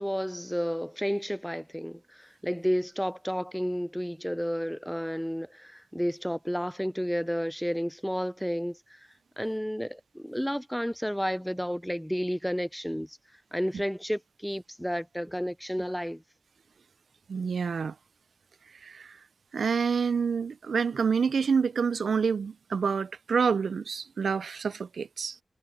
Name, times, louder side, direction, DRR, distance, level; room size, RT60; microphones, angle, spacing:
voice 1, 0.0-9.0 9.4-13.2 13.5-16.2, equal, ahead, 0.4 m, -31 dB
voice 2, 17.3-17.9 18.8-19.2 19.5-25.4, right 6 dB, 90° right, 0.3 m, -27 dB
wide cardioid pair, 95°, 0 cm